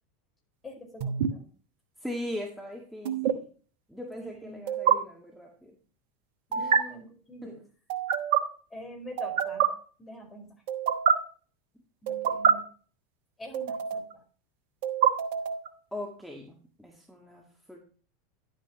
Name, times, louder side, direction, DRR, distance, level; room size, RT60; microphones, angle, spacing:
voice 1, 0.6-1.5 4.2-4.7 6.5-7.6 8.7-9.7 10.0-10.5 12.0-12.6 13.4-14.2, equal, 20° left, 2 dB, 4.8 m, -45 dB
sound 1, 1.0-1.3 3.0-3.3 4.7-4.9 6.5-6.8 7.9-8.4 9.2-9.7 10.7-11.1 12.1-12.5 13.5-14.1 14.8-15.7, right 8 dB, 60° right, 1.1 m, -25 dB
voice 2, 2.0-3.4 3.9-5.8 6.6-6.9 7.4-7.5 12.1-12.6 15.9-17.8, left 1 dB, ahead, -1 dB, 1.9 m, -40 dB
11.0 x 8.9 x 3.0 m, 0.40 s
figure-of-eight pair, 85°, 0 cm